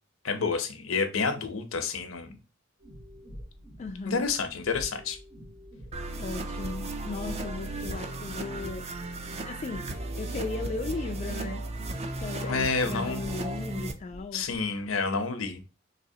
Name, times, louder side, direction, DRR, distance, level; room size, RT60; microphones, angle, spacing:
voice 1, 0.2-2.3 4.0-5.2 12.4-13.2 14.3-15.6, left 4 dB, 85° left, 0.7 m, -29 dB
sound 1, 2.8-14.6, equal, 65° right, 1.7 m, -48 dB
voice 2, 3.8-4.3 6.2-8.9 9.5-11.6 12.2-14.5, left 3 dB, 35° left, 0.3 m, -37 dB
sound 2, 5.9-13.9, right 2 dB, 30° right, 0.5 m, -35 dB
4.1 x 2.8 x 2.7 m
head